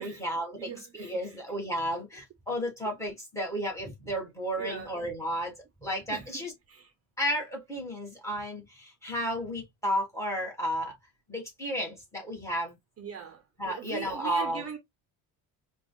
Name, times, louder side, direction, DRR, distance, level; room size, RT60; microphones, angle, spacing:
voice 1, 0.0-5.5 5.8-6.5 7.2-10.9 11.3-12.7 13.6-14.7, equal, 10° left, 1.6 m, -33 dB
voice 2, 0.6-1.6 4.5-5.0 6.1-6.9 13.0-14.8, right 7 dB, 40° right, 0.6 m, -41 dB
4.8 x 2.3 x 2.2 m
cardioid pair, 140°, 38 cm